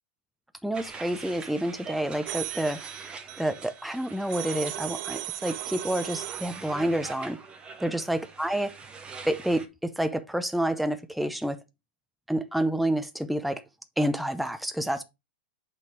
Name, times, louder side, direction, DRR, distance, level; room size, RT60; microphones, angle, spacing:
voice 1, 0.6-3.1 3.4-7.4 7.8-8.7 9.2-11.6 12.3-13.6 14.0-15.0, right 1 dB, ahead, 0.5 m, -29 dB
sound 1, 0.7-9.7, right 5 dB, 20° right, 0.9 m, -44 dB
sound 2, 2.2-6.7, right 13 dB, 50° right, 0.8 m, -37 dB
8.3 x 3.5 x 4.5 m
hypercardioid pair, 140°, 6 cm